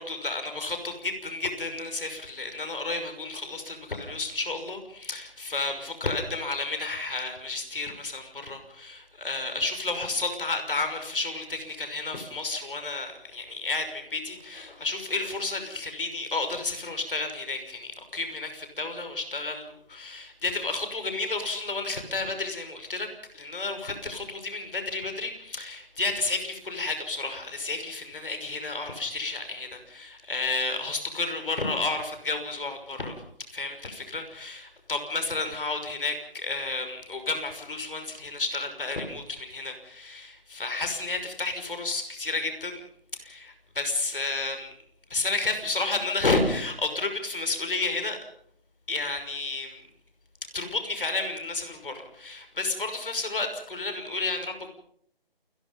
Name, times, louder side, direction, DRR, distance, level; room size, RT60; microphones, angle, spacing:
voice 1, 0.0-23.1 23.3-33.2 33.5-42.8 43.2-44.7 45.1-48.2 48.9-49.8 50.5-54.7, left 3 dB, 60° left, 7 dB, 6.0 m, -31 dB
28.5 x 20.0 x 5.6 m, 0.69 s
figure-of-eight pair, 170°, 30 cm